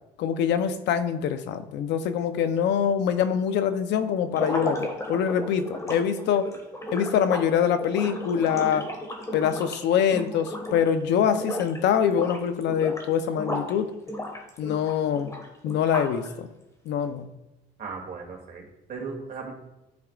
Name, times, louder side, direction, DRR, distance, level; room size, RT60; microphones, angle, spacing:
voice 1, 0.2-6.5 6.9-8.9 9.3-13.9 14.6-15.3 15.6-16.5 16.9-17.3, left 8 dB, 75° left, 10 dB, 0.7 m, -24 dB
sound 1, 4.3-11.0 11.3-11.8 12.1-13.7 14.1-16.3, left 1 dB, 15° left, 1.6 m, -34 dB
voice 2, 17.8-19.5, right 4 dB, 50° right, -1 dB, 2.5 m, -37 dB
13.0 x 4.9 x 2.4 m, 0.94 s
cardioid pair, 100°, 18 cm